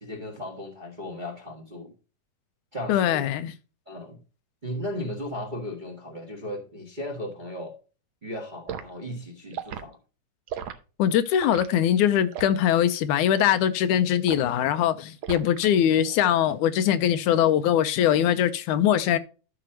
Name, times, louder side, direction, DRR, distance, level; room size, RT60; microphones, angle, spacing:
voice 1, 0.0-1.9 2.7-3.3 3.9-4.2 4.6-7.8 8.2-10.0, left 1 dB, 25° right, 1.0 m, -36 dB
voice 2, 2.9-3.5 11.0-19.2, left 10 dB, 85° left, 2.1 m, -22 dB
Liquid, 8.7-8.9 9.5-9.9 10.5-10.8 11.4-11.7 12.3-12.6 13.3-13.6 14.3-14.5 15.2-15.6 16.0-16.3, right 8 dB, 90° right, 1.1 m, -36 dB
12.5 x 5.9 x 2.9 m
omnidirectional pair, 3.5 m